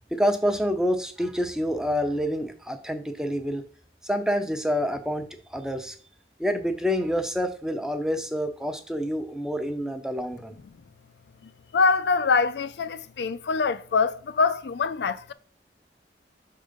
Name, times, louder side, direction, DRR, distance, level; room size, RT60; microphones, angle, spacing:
voice 1, 0.1-3.7 4.0-6.0 6.4-10.6, equal, 5° right, 0.6 m, -27 dB
voice 2, 11.7-15.3, left 4 dB, 75° left, 0.4 m, -24 dB
6.2 x 3.8 x 5.1 m
head